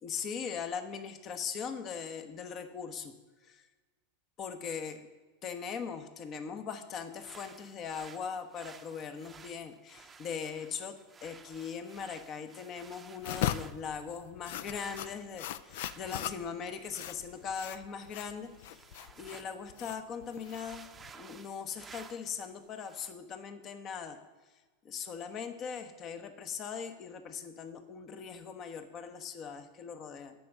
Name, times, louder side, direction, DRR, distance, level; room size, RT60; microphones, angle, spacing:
voice 1, 0.0-3.1 3.4-3.7 4.4-5.0 5.4-11.0 11.2-18.8 19.2-20.8 21.1-24.2 24.8-30.3, left 6 dB, 40° left, 9 dB, 1.1 m, -40 dB
sound 1, 6.9-14.0 14.6-19.6 19.8-19.9 20.3-22.4 22.8-23.1, right 5 dB, 20° right, 0.7 m, -55 dB
sound 2, 13.2-21.1, left 12 dB, 65° left, 0.4 m, -39 dB
8.4 x 6.1 x 6.7 m, 1.3 s
hypercardioid pair, 105°, 0 cm